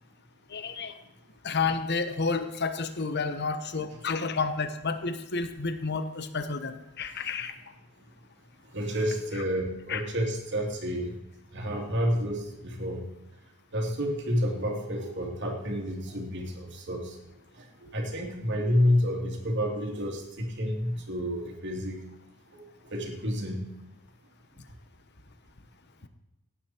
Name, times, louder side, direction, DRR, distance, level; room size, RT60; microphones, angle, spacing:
voice 1, 0.5-0.9 1.4-7.5 9.9-10.0, left 4 dB, 50° left, 9 dB, 1.1 m, -30 dB
voice 2, 8.7-11.1 11.5-13.0 13.7-17.2 17.9-22.0 22.5-22.6 22.9-23.7, equal, 55° right, 1 dB, 2.7 m, -29 dB
17.0 x 9.8 x 4.5 m, 0.95 s
head